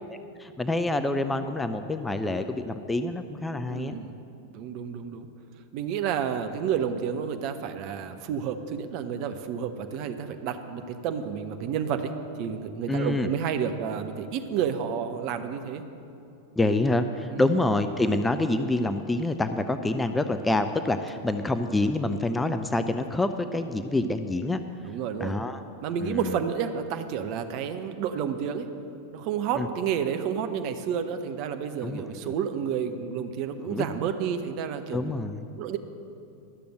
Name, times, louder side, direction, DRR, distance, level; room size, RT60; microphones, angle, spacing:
voice 1, 0.1-4.0 12.9-13.3 16.6-24.6 25.2-25.6 26.0-26.4 29.6-29.7 31.8-32.3 33.6-33.8 34.9-35.5, left 2 dB, 10° left, 9 dB, 0.4 m, -27 dB
voice 2, 3.7-4.1 4.5-5.3 5.7-12.1 12.4-15.8 17.3-17.4 24.8-25.3 25.8-28.7 29.1-35.2 35.6-35.8, right 8 dB, 45° right, 7 dB, 0.8 m, -30 dB
12.5 x 6.8 x 7.7 m, 2.7 s
figure-of-eight pair, 90°, 0 cm